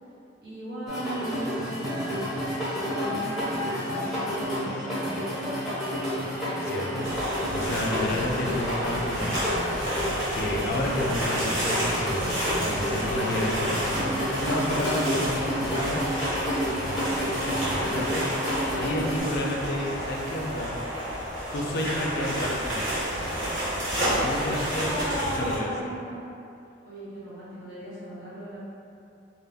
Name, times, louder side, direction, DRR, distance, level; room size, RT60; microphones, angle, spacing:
voice 1, 0.4-2.2 2.6-3.5 3.8-5.6 24.7-26.2 26.8-28.6, right 1 dB, 55° right, -13 dB, 1.2 m, -37 dB
sound 1, 0.9-19.2, equal, ahead, 0.5 m, -30 dB
voice 2, 6.6-7.1 7.5-9.4 10.2-14.1 14.4-16.1 16.6-18.4 18.7-20.8 21.5-24.9 25.3-25.7, left 1 dB, 55° left, -1 dB, 0.4 m, -31 dB
sound 2, 7.0-25.6, equal, 80° right, 1.1 m, -31 dB
2.3 x 2.0 x 3.4 m, 2.6 s
head